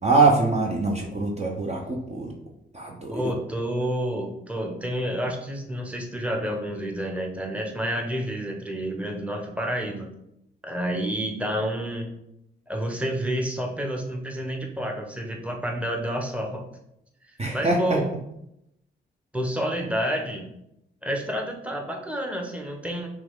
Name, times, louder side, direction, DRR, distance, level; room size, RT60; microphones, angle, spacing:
voice 1, 0.0-2.3 2.7-3.4 17.4-18.0, right 3 dB, 30° right, 0 dB, 0.8 m, -23 dB
voice 2, 3.1-10.1 10.6-12.1 12.7-16.6 17.5-18.0 19.3-20.5 21.0-23.1, equal, 5° right, 2 dB, 1.1 m, -29 dB
5.9 x 2.4 x 3.6 m, 0.80 s
cardioid pair, 55°, 21 cm